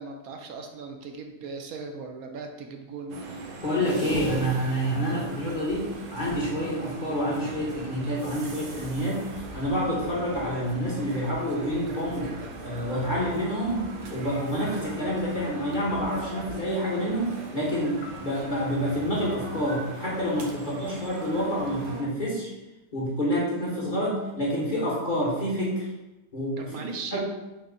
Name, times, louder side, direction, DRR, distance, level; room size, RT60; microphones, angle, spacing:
voice 1, 0.0-3.4 5.1-5.3 20.6-20.7 26.6-27.2, right 4 dB, 80° right, 3 dB, 1.0 m, -39 dB
sound 1, 3.1-22.0, right 2 dB, 60° right, 0.5 m, -39 dB
voice 2, 3.6-12.3 12.6-22.5 22.9-25.9 26.3-27.2, equal, 40° left, -5 dB, 0.9 m, -28 dB
Piano, 18.0-20.6, left 1 dB, 90° left, 1.1 m, -53 dB
4.0 x 2.7 x 3.8 m, 1.0 s
omnidirectional pair, 1.5 m